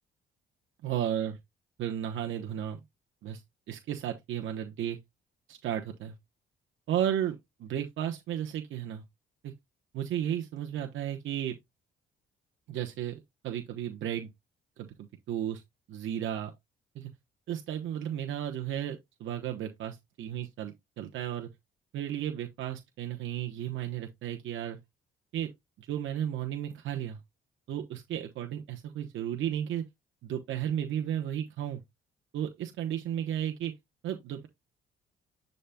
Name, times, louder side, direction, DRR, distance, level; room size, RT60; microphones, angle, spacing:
voice 1, 0.8-1.4 1.8-2.8 3.2-3.4 3.7-5.0 5.5-6.1 6.9-9.0 9.4-9.5 9.9-11.6 12.7-14.3 14.8-14.9 15.3-15.6 15.9-16.5 16.9-17.1 17.5-21.5 21.9-24.8 25.3-25.5 25.8-27.2 27.7-29.8 30.2-31.8 32.3-33.7 34.0-34.5, right 10 dB, 75° right, 1.0 m, -34 dB
10.0 x 4.1 x 2.2 m
cardioid pair, 90°, 20 cm